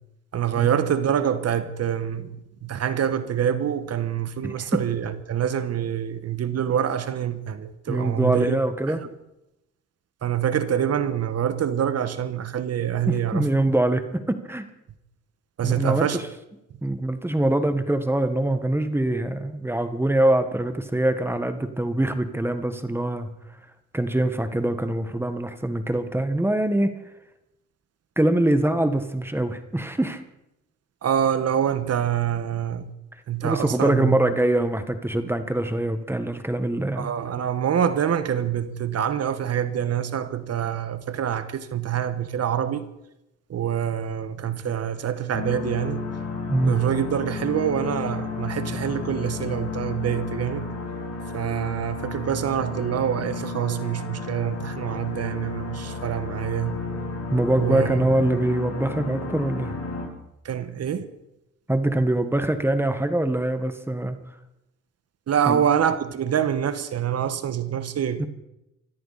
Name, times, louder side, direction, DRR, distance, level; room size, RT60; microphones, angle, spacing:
voice 1, 0.3-8.6 8.9-9.0 10.2-13.5 15.6-16.2 31.0-32.9 33.3-34.2 37.0-42.8 43.5-46.0 46.6-50.7 51.3-56.8 57.5-57.9 58.3-58.4 60.4-61.1 65.3-68.3, right 9 dB, 55° right, 1.4 m, -26 dB
voice 2, 4.4-4.8 7.9-9.0 13.1-14.6 15.6-16.2 16.8-23.3 23.9-26.9 28.2-30.2 33.4-37.1 46.5-46.8 57.3-59.7 61.7-64.2 65.5-65.6 68.2-68.3, right 1 dB, 10° right, 1.5 m, -23 dB
sound 1, 45.3-60.1, left 3 dB, 60° left, 6.6 m, -32 dB
24.5 x 13.5 x 4.2 m
cardioid pair, 90°, 30 cm